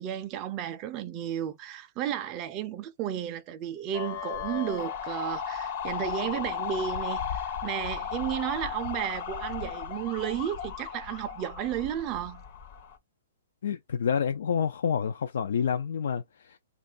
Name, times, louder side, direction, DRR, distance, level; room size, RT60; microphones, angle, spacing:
voice 1, 0.0-12.4, right 10 dB, 25° right, 0.4 m, -33 dB
sound 1, 3.9-13.0, left 8 dB, 40° left, 0.8 m, -35 dB
voice 2, 13.6-16.6, left 7 dB, 70° left, 0.4 m, -28 dB
2.6 x 2.4 x 3.8 m
hypercardioid pair, 155°, 0 cm